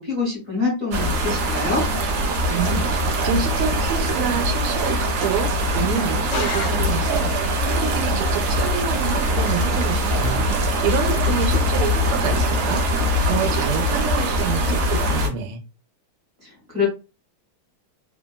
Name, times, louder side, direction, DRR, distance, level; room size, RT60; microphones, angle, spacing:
voice 1, 0.0-1.8 16.4-16.9, left 4 dB, 50° right, -3 dB, 1.1 m, -25 dB
sound 1, 0.9-15.3, equal, 65° right, 1.4 m, -22 dB
voice 2, 2.5-15.6, right 7 dB, 85° right, 3 dB, 1.5 m, -28 dB
sound 2, 6.3-7.4, left 7 dB, 90° left, 1.5 m, -32 dB
3.5 x 2.1 x 2.2 m, 0.31 s
omnidirectional pair, 2.3 m